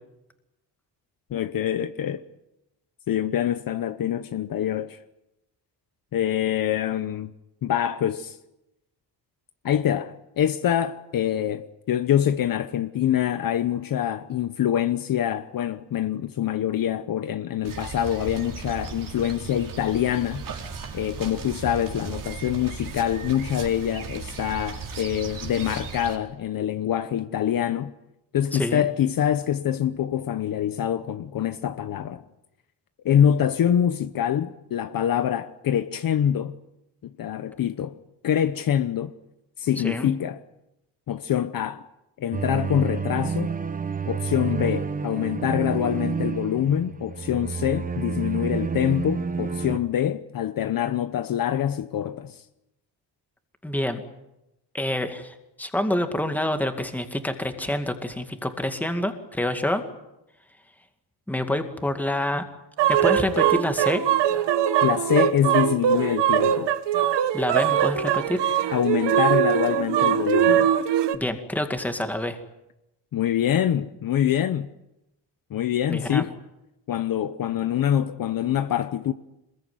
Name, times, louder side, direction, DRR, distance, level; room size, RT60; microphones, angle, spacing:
voice 1, 1.3-2.2 3.1-5.0 6.1-7.3 7.6-8.4 9.6-20.4 20.9-27.9 28.3-32.2 33.0-36.5 37.2-38.0 38.2-39.1 39.6-40.4 41.1-41.8 42.2-43.5 44.0-52.4 64.8-66.8 68.7-70.7 73.1-74.7 75.5-76.4 76.9-79.1, left 10 dB, 50° left, 1.0 m, -25 dB
sound 1, 17.6-26.2, right 5 dB, 50° right, 4.1 m, -36 dB
voice 2, 28.5-28.8 39.8-40.1 53.6-54.0 54.7-59.8 61.3-62.4 62.9-64.0 67.3-68.4 71.1-72.4 75.9-76.2, left 1 dB, 5° left, 2.1 m, -27 dB
sound 2, 42.3-49.8, right 5 dB, 20° right, 0.9 m, -29 dB
sound 3, 62.8-71.2, right 10 dB, 70° right, 1.5 m, -22 dB
26.5 x 21.0 x 9.6 m
cardioid pair, 180°, 43 cm